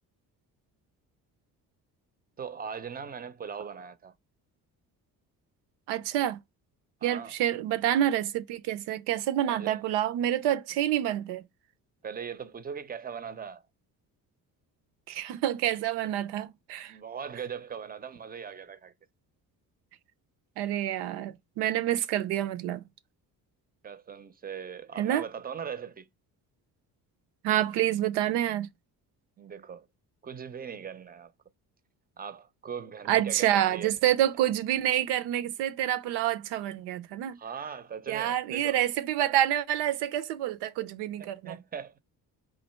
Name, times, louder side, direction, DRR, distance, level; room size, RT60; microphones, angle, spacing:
voice 1, 2.4-4.1 7.0-7.3 9.5-9.8 12.0-13.6 16.9-18.9 23.8-26.1 29.4-29.9 30.2-31.3 32.2-34.0 37.3-38.8 41.2-42.0, right 7 dB, 25° right, 0.5 m, -40 dB
voice 2, 5.9-6.4 7.0-11.4 15.1-16.9 20.6-22.8 25.0-25.2 27.4-28.7 33.1-37.4 38.1-41.6, right 12 dB, 85° right, 0.6 m, -28 dB
3.1 x 2.5 x 4.3 m
supercardioid pair, 75°, 40 cm